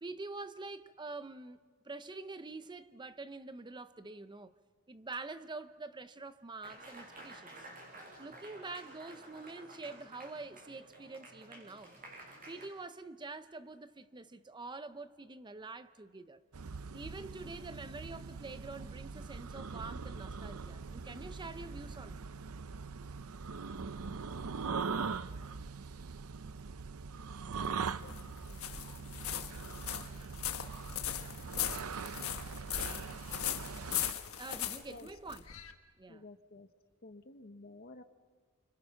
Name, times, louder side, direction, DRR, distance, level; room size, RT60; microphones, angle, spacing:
voice 1, 0.0-1.6 1.8-4.5 4.9-7.7 8.2-11.9 12.5-16.4 16.9-22.2 34.4-35.4 36.0-36.2, right 3 dB, 20° right, 0.6 m, -46 dB
Applause, 6.6-12.7, right 2 dB, 40° right, 6.7 m, -52 dB
sound 1, 16.5-34.1, right 5 dB, 85° right, 0.7 m, -42 dB
sound 2, 27.5-35.7, left 11 dB, 75° left, 1.5 m, -39 dB
voice 2, 34.8-35.1 36.1-36.7 37.0-38.0, left 2 dB, 45° left, 1.3 m, -51 dB
29.5 x 25.5 x 5.9 m
head